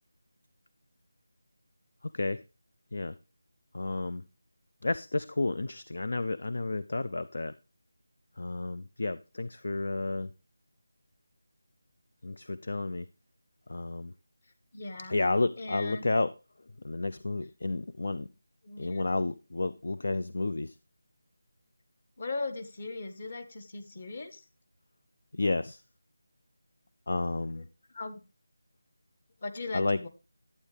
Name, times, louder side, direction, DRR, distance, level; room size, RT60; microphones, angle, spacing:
voice 1, 3.7-4.2 4.8-7.5 8.4-10.3 12.2-13.1 13.7-14.1 15.1-16.3 16.8-18.3 18.8-20.8 25.3-25.8 27.1-27.7 29.7-30.0, left 2 dB, 60° left, 14 dB, 0.4 m, -31 dB
voice 2, 14.7-15.1 15.6-16.1 18.6-19.0 22.2-24.4 27.9-28.2 29.4-30.1, left 3 dB, 45° left, 9 dB, 1.3 m, -38 dB
11.5 x 8.4 x 3.3 m, 0.30 s
figure-of-eight pair, 165°, 0 cm